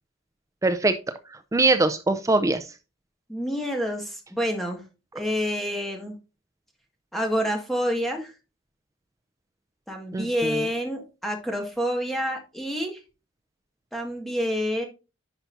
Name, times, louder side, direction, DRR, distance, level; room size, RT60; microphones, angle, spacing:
voice 1, 0.6-2.8 10.1-10.7, right 2 dB, 15° right, 0.4 m, -23 dB
voice 2, 3.3-4.8 5.1-6.2 7.1-8.3 9.9-13.0 13.9-14.8, equal, ahead, 1.7 m, -28 dB
10.5 x 5.6 x 2.6 m
head